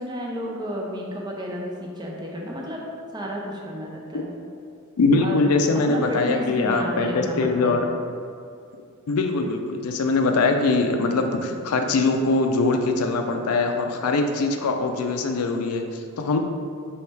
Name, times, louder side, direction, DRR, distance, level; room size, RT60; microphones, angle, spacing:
voice 1, 0.0-2.8 3.1-4.3 5.2-7.8, equal, 20° right, -2 dB, 0.5 m, -31 dB
voice 2, 5.0-7.9 9.1-16.4, left 3 dB, 90° left, 5 dB, 0.4 m, -22 dB
4.6 x 3.1 x 3.3 m, 2.5 s
head